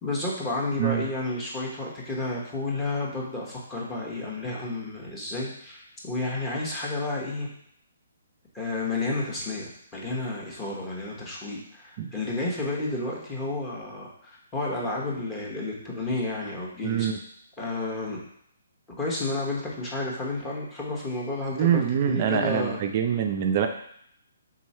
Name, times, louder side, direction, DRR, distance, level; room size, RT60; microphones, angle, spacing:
voice 1, 0.0-7.5 8.5-17.1 17.6-18.2 19.0-22.8, left 2 dB, 15° left, -4 dB, 1.2 m, -31 dB
voice 2, 16.8-17.2 21.6-23.7, right 8 dB, 40° right, 5 dB, 0.3 m, -24 dB
3.7 x 3.0 x 4.2 m, 0.69 s
hypercardioid pair, 140°, 0 cm